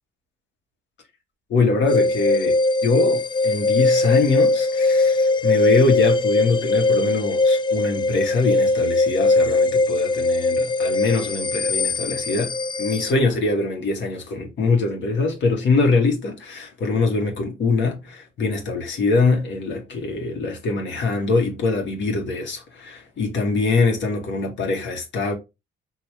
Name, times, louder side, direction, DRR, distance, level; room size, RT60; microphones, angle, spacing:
voice 1, 1.5-25.3, left 3 dB, 70° left, 1.8 m, -23 dB
sound 1, 1.9-13.1, left 3 dB, 25° left, 0.4 m, -20 dB
4.8 x 3.0 x 3.5 m
cardioid pair, 90°, 20 cm